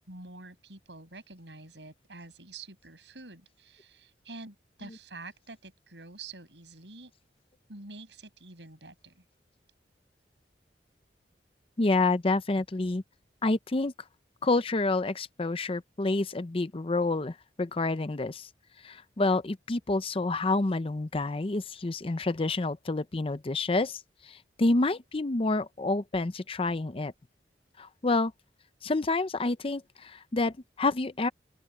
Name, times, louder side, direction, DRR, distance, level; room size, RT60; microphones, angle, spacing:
voice 1, 0.1-7.1 7.7-9.2, right 3 dB, 85° right, 6.5 m, -47 dB
voice 2, 11.8-13.0 13.4-13.9 14.4-18.5 18.8-27.1 27.8-28.3 28.8-31.3, left 2 dB, 30° left, 0.6 m, -28 dB
open air
head